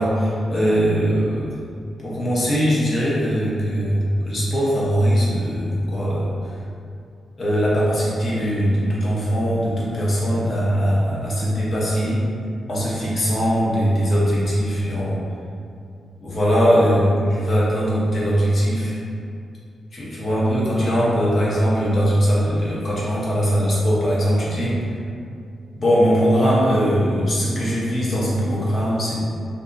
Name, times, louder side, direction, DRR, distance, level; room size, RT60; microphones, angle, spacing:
voice 1, 0.0-1.5 2.0-6.3 7.4-12.3 12.7-15.2 16.2-19.0 19.9-24.8 25.8-29.3, equal, 45° left, -7 dB, 0.7 m, -20 dB
2.7 x 2.5 x 2.4 m, 2.4 s
wide cardioid pair, 130°, 0 cm